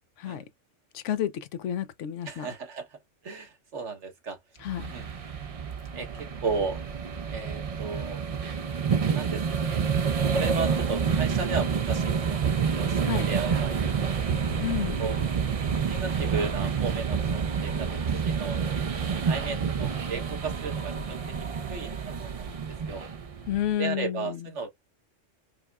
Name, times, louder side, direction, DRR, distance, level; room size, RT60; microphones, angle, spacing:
voice 1, 0.9-2.5 4.6-4.9 13.0-13.3 14.6-15.0 23.5-24.4, left 10 dB, 80° left, 0.9 m, -30 dB
voice 2, 2.2-3.0 3.2-4.4 4.9-5.1 5.9-6.9 7.3-8.2 9.1-9.8 10.3-14.3 15.0-15.2 15.7-18.6 19.2-21.2 21.7-21.9 22.2-22.5 22.9-23.0 23.8-24.7, right 4 dB, 75° right, 1.5 m, -35 dB
sound 1, 4.7-23.7, right 6 dB, 50° right, 0.4 m, -28 dB
4.8 x 2.1 x 2.4 m
omnidirectional pair, 1.3 m